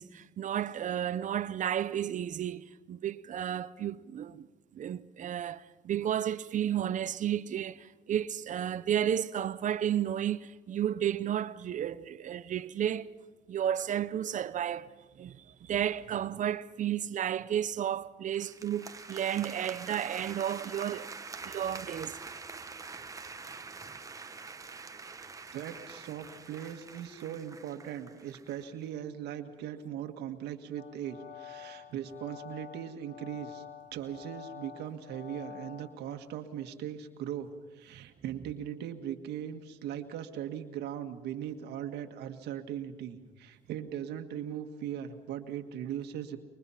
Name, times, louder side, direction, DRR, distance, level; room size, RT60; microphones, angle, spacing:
voice 1, 0.0-4.5 4.7-13.1 13.5-21.1 21.4-22.2, right 10 dB, 50° right, 0.7 m, -32 dB
sound 1, 18.3-28.7, right 4 dB, 20° right, 1.1 m, -45 dB
voice 2, 25.5-33.6 33.9-46.4, right 10 dB, 80° right, 1.8 m, -39 dB
sound 2, 30.8-36.2, left 9 dB, 70° left, 2.1 m, -48 dB
25.5 x 23.0 x 5.8 m
cardioid pair, 110°, 17 cm